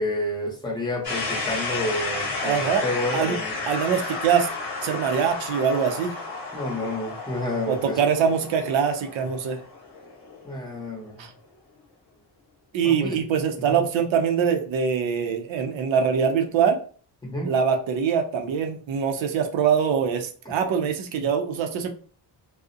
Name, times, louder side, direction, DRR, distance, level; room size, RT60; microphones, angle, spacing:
voice 1, 0.0-3.6 6.5-8.0 10.4-11.2 12.8-13.2 13.7-13.8 17.2-17.5, left 1 dB, 10° left, -3 dB, 0.7 m, -29 dB
sound 1, 1.0-10.9, left 3 dB, 55° left, 1.0 m, -32 dB
voice 2, 2.4-2.8 3.1-3.4 3.7-4.5 4.8-6.1 7.7-9.6 11.2-11.3 12.7-16.8 17.4-21.9, right 7 dB, 80° right, 5 dB, 0.5 m, -23 dB
2.4 x 2.0 x 2.5 m, 0.42 s
wide cardioid pair, 135°, 46 cm